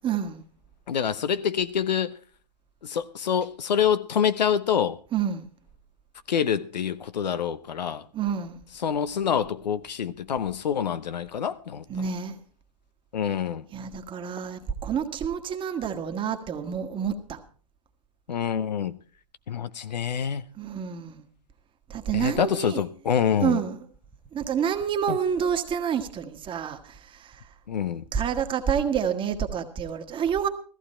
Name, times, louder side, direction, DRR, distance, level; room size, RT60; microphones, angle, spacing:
voice 1, 0.0-0.4 5.1-5.5 8.1-8.6 11.9-12.4 13.7-17.4 20.6-21.2 21.9-22.8 23.4-23.8 24.3-27.4 28.1-30.5, right 8 dB, 25° right, 1.5 m, -28 dB
voice 2, 0.9-2.1 2.8-5.0 6.3-8.0 8.8-11.8 13.1-13.7 18.3-19.0 19.5-20.4 22.1-23.6 25.1-25.2 27.7-28.0, left 8 dB, 80° left, 0.9 m, -26 dB
14.5 x 14.5 x 4.3 m
hypercardioid pair, 115°, 21 cm